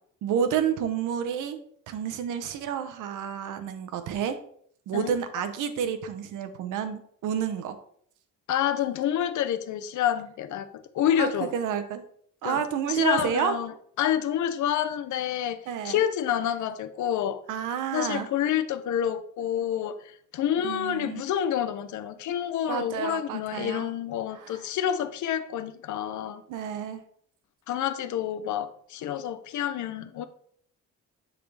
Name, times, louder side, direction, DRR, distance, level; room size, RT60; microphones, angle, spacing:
voice 1, 0.2-1.6 1.9-4.4 4.9-7.8 11.2-12.0 12.4-13.6 15.7-16.0 17.5-18.3 20.5-21.2 22.7-23.9 24.3-24.6 26.5-27.0, right 8 dB, 90° right, 0.9 m, -30 dB
voice 2, 8.5-10.7 10.9-11.5 12.4-12.6 12.9-13.7 14.0-15.6 15.8-17.4 17.9-20.0 20.3-26.4 27.7-30.3, left 10 dB, 75° left, 0.7 m, -28 dB
10.0 x 3.8 x 3.3 m
cardioid pair, 90°, 30 cm